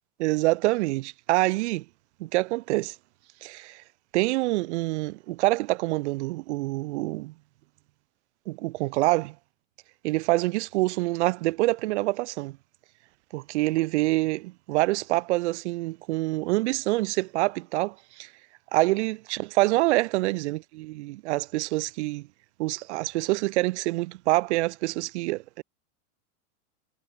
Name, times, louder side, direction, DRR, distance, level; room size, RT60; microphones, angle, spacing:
voice 1, 0.2-1.8 2.2-2.9 3.4-3.8 4.1-7.3 8.5-9.3 10.0-12.6 13.3-18.3 18.7-22.3 22.6-25.6, right 20 dB, 50° right, 1.4 m, -26 dB
supercardioid pair, 175°, 45 cm